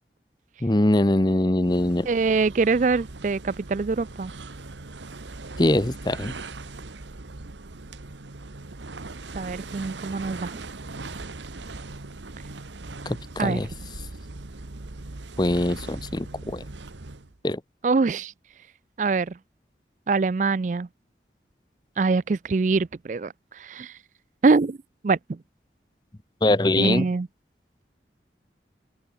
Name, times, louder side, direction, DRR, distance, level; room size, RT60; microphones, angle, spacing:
voice 1, 0.6-2.1 5.6-6.3 13.1-13.7 15.4-16.6 17.4-17.6 26.4-27.1, left 1 dB, 25° left, 0.8 m, -22 dB
sound 1, 1.6-17.4, right 3 dB, 90° right, 1.3 m, -40 dB
voice 2, 2.1-4.3 9.3-10.6 13.4-13.6 17.8-18.3 19.0-19.4 20.1-20.9 22.0-24.0 24.4-24.8 25.0-25.4 26.8-27.3, right 4 dB, 45° right, 0.4 m, -24 dB
head